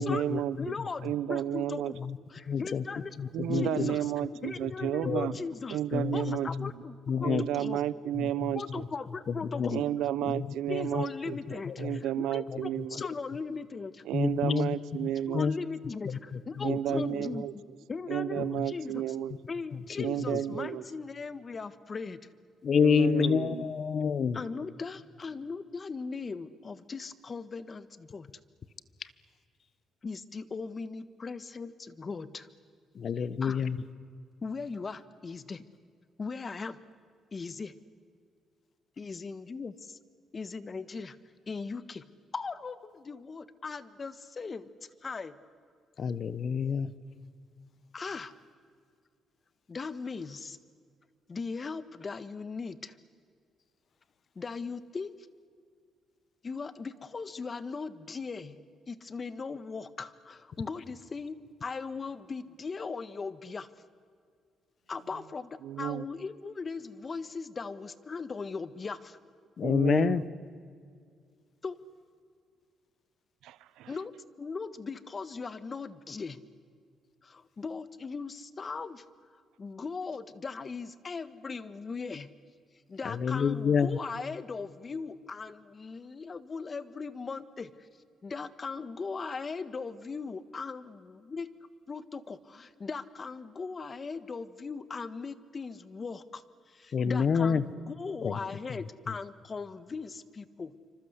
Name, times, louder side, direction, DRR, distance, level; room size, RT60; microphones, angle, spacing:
voice 1, 0.0-0.7 1.0-1.9 3.3-5.4 5.7-6.7 7.2-8.8 9.7-13.0 14.1-15.4 16.6-17.5 18.1-19.4 20.0-20.8 22.8-23.7 65.6-66.0 69.6-70.2 73.4-73.9, right 11 dB, 90° right, 19 dB, 0.8 m, -32 dB
voice 2, 0.6-2.0 2.3-3.1 3.5-4.1 4.4-7.8 8.2-8.3 8.5-9.9 10.7-13.9 14.4-14.5 15.3-17.5 17.9-19.1 19.5-22.2 24.3-27.9 28.1-28.3 30.0-32.4 33.4-33.6 34.4-35.6 36.2-36.8 37.3-37.7 39.0-40.0 40.3-41.2 41.5-42.0 42.3-44.7 45.0-45.4 47.9-48.3 49.7-50.6 51.3-53.0 54.3-55.2 56.4-58.6 58.9-63.7 64.9-69.2 71.6-71.8 73.9-74.1 74.4-76.4 77.2-79.0 79.6-82.3 82.9-87.7 88.2-91.5 91.9-96.4 96.7-100.7, left 4 dB, 35° left, 15 dB, 1.5 m, -39 dB
voice 3, 2.5-2.8 3.2-4.0 5.0-5.3 5.9-6.7 7.1-7.4 8.1-8.5 9.5-9.8 10.3-11.0 11.7-12.0 12.5-12.6 13.0-13.1 14.1-14.7 15.0-15.1 15.3-15.6 16.1-17.0 18.4-18.7 20.2-20.4 22.6-24.4 33.0-33.8 46.0-46.9 69.6-70.2 83.0-84.0 96.9-97.6 98.2-98.4, left 6 dB, 55° left, 17 dB, 1.2 m, -28 dB
27.5 x 25.5 x 8.2 m, 2.2 s
cardioid pair, 90°, 0 cm